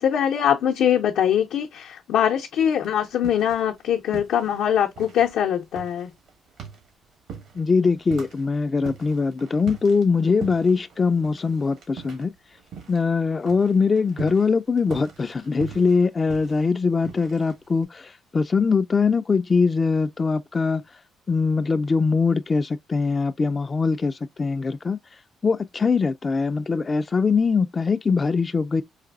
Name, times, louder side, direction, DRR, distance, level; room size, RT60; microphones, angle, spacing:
voice 1, 0.0-6.1, left 9 dB, 80° left, 0.6 m, -22 dB
sound 1, 2.6-3.8 4.1-13.1 13.4-17.8, right 7 dB, 80° right, 1.9 m, -42 dB
voice 2, 7.5-12.3 12.9-20.8 21.3-25.0 25.4-28.8, left 4 dB, 30° left, 0.3 m, -22 dB
4.9 x 2.6 x 2.4 m
cardioid pair, 90°, 0 cm